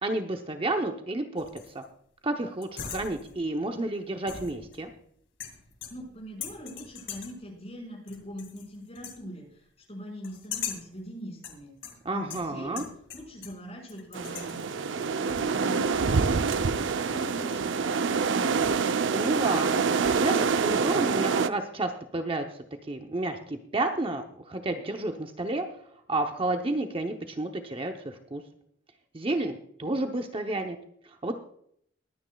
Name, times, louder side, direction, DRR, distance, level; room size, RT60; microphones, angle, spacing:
voice 1, 0.0-1.8 2.2-4.9 12.0-12.8 19.1-22.4 22.9-25.7 26.1-28.4 29.1-30.8 31.2-31.3, right 2 dB, 30° right, 5 dB, 0.8 m, -31 dB
sound 1, 1.4-1.8 2.6-3.5 4.3-5.0 5.4-6.1 6.4-7.4 8.1-8.7 8.9-9.2 10.2-11.0 11.4-13.6 13.9-14.6, left 8 dB, 80° left, 2.2 m, -40 dB
voice 2, 5.9-16.6 16.9-18.6, equal, 35° left, 0 dB, 5.0 m, -42 dB
sound 2, 14.1-21.5, right 5 dB, 80° right, 0.6 m, -26 dB
22.0 x 9.5 x 2.3 m, 0.67 s
head